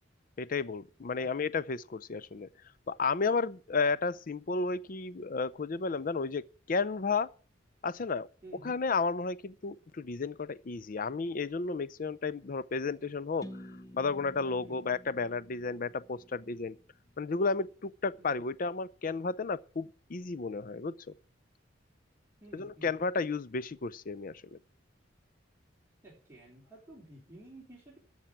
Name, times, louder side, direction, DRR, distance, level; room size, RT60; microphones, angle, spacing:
voice 1, 0.4-2.5 2.9-7.3 7.8-8.3 8.6-13.5 13.9-16.8 17.2-20.9 22.5-24.6, left 4 dB, 45° left, 0.5 m, -32 dB
voice 2, 8.4-8.8 14.6-14.8 18.2-18.3 22.4-23.0 26.0-28.0, right 1 dB, 10° right, 4.0 m, -52 dB
sound 1, 13.4-17.3, equal, 20° left, 0.8 m, -51 dB
13.5 x 5.7 x 8.7 m
head